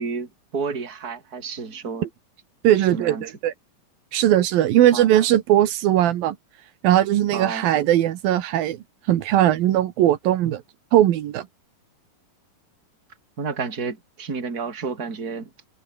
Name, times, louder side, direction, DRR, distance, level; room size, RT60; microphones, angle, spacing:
voice 1, 0.0-2.1 2.8-3.3 4.9-5.1 7.3-7.7 13.4-15.5, right 5 dB, 25° right, 4.0 m, -31 dB
voice 2, 2.6-3.5 4.1-6.4 6.8-8.8 9.1-10.6 10.9-11.5, right 12 dB, 85° right, 3.2 m, -19 dB
omnidirectional pair, 4.0 m